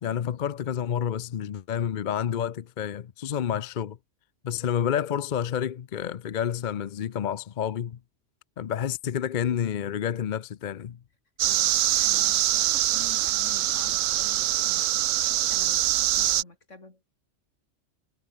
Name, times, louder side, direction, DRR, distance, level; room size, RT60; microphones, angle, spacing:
voice 1, 0.0-4.0 4.4-8.0 8.6-11.0, left 9 dB, 50° left, 0.6 m, -29 dB
voice 2, 11.4-17.0, left 2 dB, 75° left, 4.7 m, -48 dB
sound 1, 11.4-16.4, right 13 dB, 90° right, 1.0 m, -24 dB
omnidirectional pair, 1.3 m